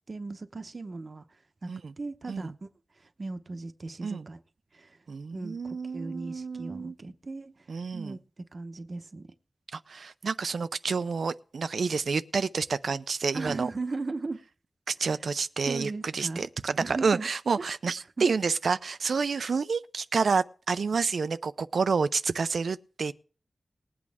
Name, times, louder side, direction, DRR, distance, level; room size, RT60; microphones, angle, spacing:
voice 1, 0.1-1.2 1.6-1.7 2.0-2.7 3.2-4.4 4.7-5.0 5.3-7.5 7.9-8.2 8.5-9.3 13.3-14.4 15.1-15.2 15.7-16.5 16.8-17.3 17.6-17.7 18.2-18.3, right 3 dB, 50° right, 0.9 m, -37 dB
voice 2, 5.1-6.9 7.7-8.2 9.7-13.7 14.9-23.1, right 5 dB, 90° right, 0.5 m, -29 dB
20.0 x 8.6 x 3.5 m
wide cardioid pair, 90°, 0 cm